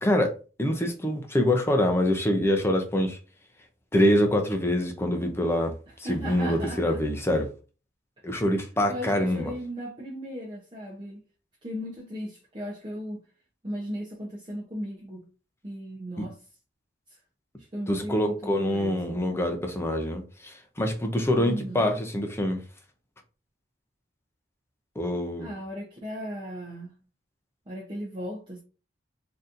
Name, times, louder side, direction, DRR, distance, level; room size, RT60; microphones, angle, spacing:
voice 1, 0.0-3.2 3.9-5.8 6.1-7.5 8.2-9.5 17.9-22.6 25.0-25.5, left 1 dB, 15° left, 0.5 m, -25 dB
voice 2, 6.0-7.0 8.2-8.4 8.9-11.2 11.6-13.2 13.6-15.3 15.6-16.4 17.1-17.2 17.6-19.3 21.3-21.9 25.4-27.0 27.7-28.6, equal, 25° right, 0.7 m, -37 dB
3.9 x 2.7 x 2.5 m
head